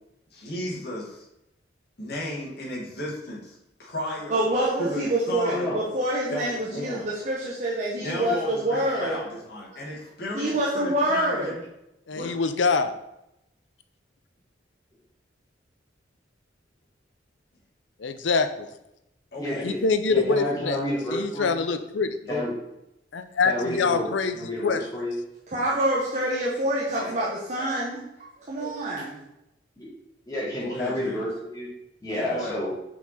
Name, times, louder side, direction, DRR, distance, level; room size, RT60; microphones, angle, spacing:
voice 1, 0.3-1.2 2.0-4.4 4.8-5.7 6.3-7.1 8.0-11.5 12.1-12.4 19.3-19.7 22.2-22.4 30.6-31.3 32.1-32.6, left 1 dB, 60° left, -4 dB, 2.0 m, -34 dB
voice 2, 4.3-9.2 10.3-11.5 25.5-29.2, right 1 dB, 40° right, -5 dB, 1.0 m, -26 dB
voice 3, 5.4-5.8 19.4-19.8 20.1-21.5 22.3-22.5 23.4-25.2 26.9-27.1 29.8-29.9 30.3-31.7 32.0-32.7, left 1 dB, 20° left, -7 dB, 2.5 m, -30 dB
voice 4, 12.1-12.9 18.0-18.7 19.6-20.8 21.1-22.1 23.1-24.4 24.6-24.8, left 4 dB, 85° left, 10 dB, 0.6 m, -24 dB
6.0 x 4.6 x 4.2 m, 0.86 s
head